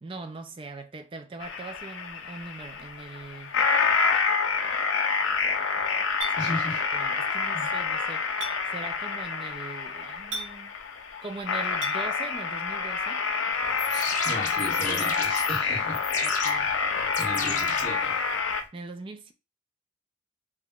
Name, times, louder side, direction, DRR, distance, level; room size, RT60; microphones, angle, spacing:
voice 1, 0.0-3.6 6.4-6.5 6.9-8.3 8.7-10.8 11.2-13.2 16.2-16.7 17.4-17.9 18.7-19.3, right 3 dB, 25° right, 0.3 m, -41 dB
sound 1, 1.4-18.6, left 5 dB, 85° left, 0.5 m, -28 dB
Chink clink, 6.2-6.4 8.4-8.6 10.3-10.5 11.8-12.0, right 1 dB, 80° right, 1.0 m, -33 dB
voice 2, 6.4-6.8 7.5-7.7 13.9-16.0 17.1-18.2, equal, 25° left, 1.8 m, -36 dB
sound 2, 13.6-18.6, left 4 dB, 40° left, 0.6 m, -35 dB
3.5 x 2.9 x 2.3 m
head